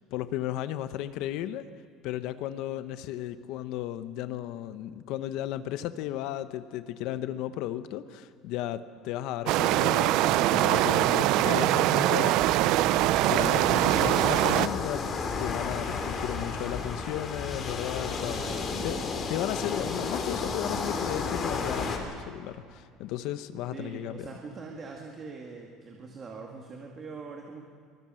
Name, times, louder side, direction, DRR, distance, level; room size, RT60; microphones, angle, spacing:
voice 1, 0.1-1.7 2.0-12.7 13.2-15.1 15.4-18.6 18.8-19.0 19.3-24.3, left 12 dB, 60° left, 12 dB, 0.8 m, -34 dB
sound 1, 9.5-14.7, right 15 dB, 60° right, 0.5 m, -23 dB
sound 2, 12.4-22.0, left 4 dB, 30° left, 3.1 m, -33 dB
voice 2, 18.3-19.1 23.7-27.6, right 4 dB, 25° right, 1 dB, 2.0 m, -42 dB
24.5 x 20.0 x 7.7 m, 2.2 s
cardioid pair, 165°, 0 cm